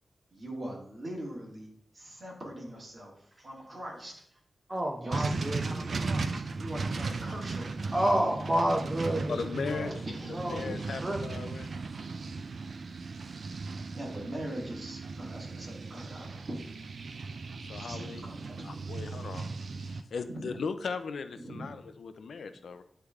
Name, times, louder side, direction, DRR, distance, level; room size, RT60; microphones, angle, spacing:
voice 1, 0.3-1.7 1.9-4.1 5.0-8.0 10.1-10.5 13.9-16.6 17.8-19.3 20.3-20.5 21.4-21.7, right 1 dB, 45° right, -1 dB, 1.8 m, -42 dB
voice 2, 4.7-5.6 7.9-9.4 9.7-9.9 10.3-10.6 11.0-11.4, right 1 dB, 20° right, 2 dB, 0.7 m, -29 dB
sound 1, 5.1-20.0, right 4 dB, 65° right, 0.4 m, -37 dB
voice 3, 9.3-10.0 10.3-11.7 17.6-18.3 18.6-19.5 19.8-22.8, left 5 dB, 85° left, 10 dB, 0.4 m, -38 dB
9.5 x 3.3 x 3.5 m, 0.67 s
wide cardioid pair, 85°, 0 cm